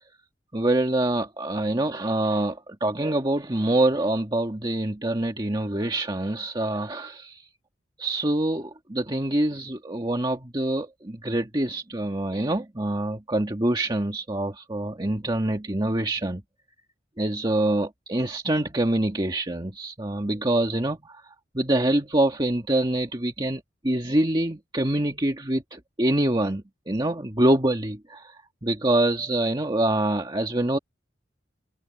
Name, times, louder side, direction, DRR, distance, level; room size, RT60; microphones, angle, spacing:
voice 1, 0.5-7.5 8.0-16.4 17.2-21.2 21.5-30.8, right 1 dB, 25° right, 1.7 m, -25 dB
head